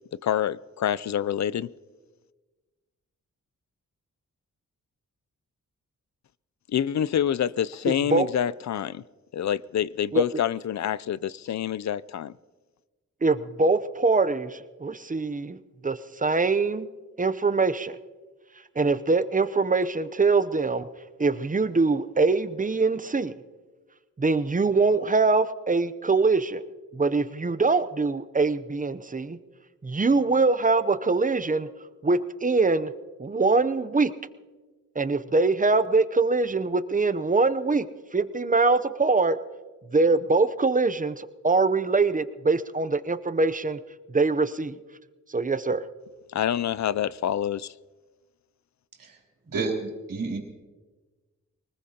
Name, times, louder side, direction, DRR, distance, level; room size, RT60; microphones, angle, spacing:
voice 1, 0.1-1.7 6.7-9.0 9.3-12.3 46.3-47.7, left 10 dB, 60° left, 0.4 m, -27 dB
voice 2, 7.9-8.3 10.1-10.2 13.2-15.6 15.8-16.9 17.2-18.0 18.8-20.8 21.2-23.3 24.2-26.6 26.9-29.4 29.8-31.7 32.0-32.9 33.2-34.1 35.0-37.8 38.1-39.4 39.9-43.8 44.1-44.8 45.3-45.8, right 3 dB, 25° right, 0.7 m, -23 dB
voice 3, 49.5-50.4, right 3 dB, 90° right, 3.4 m, -30 dB
24.0 x 20.0 x 2.9 m
wide cardioid pair, 85°, 32 cm